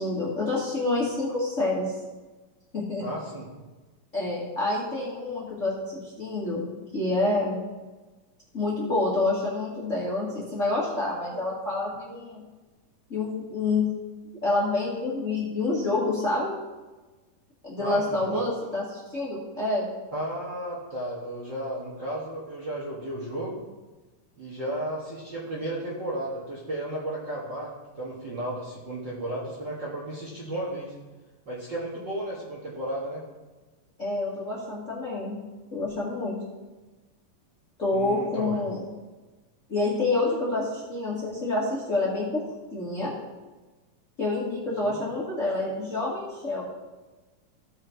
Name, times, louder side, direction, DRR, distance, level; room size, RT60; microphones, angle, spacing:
voice 1, 0.0-1.9 2.7-3.0 4.1-7.6 8.5-12.4 13.1-13.9 14.4-16.5 17.6-19.9 34.0-35.4 35.7-36.4 37.8-38.8 39.7-42.4 42.7-43.1 44.2-46.6, left 2 dB, 30° left, -6 dB, 1.7 m, -28 dB
voice 2, 3.0-3.5 17.8-18.4 20.1-23.7 24.4-30.9 31.5-33.2 37.9-38.6 44.8-45.0, right 1 dB, 45° right, -6 dB, 1.8 m, -34 dB
15.5 x 5.6 x 4.5 m, 1.2 s
omnidirectional pair, 3.8 m